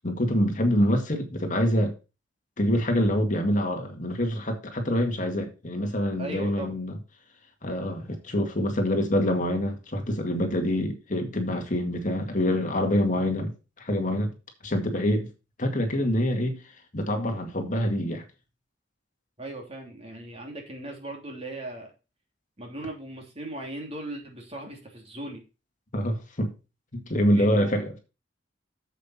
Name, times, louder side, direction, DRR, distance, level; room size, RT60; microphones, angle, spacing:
voice 1, 0.0-1.9 2.6-7.0 7.6-13.5 13.8-14.3 14.6-15.3 15.6-16.6 16.9-18.2 25.9-26.5 26.9-28.0, equal, 45° left, 2.0 m, -26 dB
voice 2, 6.2-6.7 19.4-21.9 22.6-25.4 27.3-27.9, right 1 dB, 35° right, 3.1 m, -38 dB
8.1 x 7.6 x 4.2 m
head